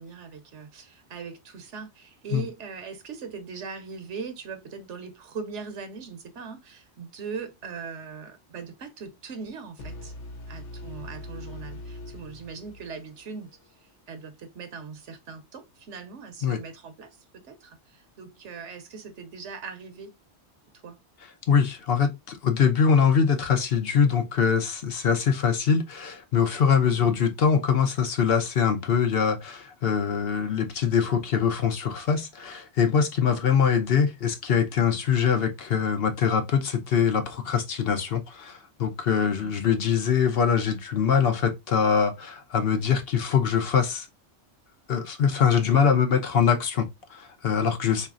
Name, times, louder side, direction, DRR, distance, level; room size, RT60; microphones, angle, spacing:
voice 1, 0.0-10.1 10.5-13.5 14.1-20.1 20.8-21.0 26.9-27.2 39.2-39.6 45.7-45.9, right 5 dB, 80° right, 1.2 m, -40 dB
sound 1, 9.8-13.7, left 1 dB, 80° left, 1.2 m, -41 dB
voice 2, 21.5-44.1 44.9-48.1, left 7 dB, 60° left, 0.9 m, -23 dB
4.0 x 3.2 x 2.4 m
omnidirectional pair, 1.2 m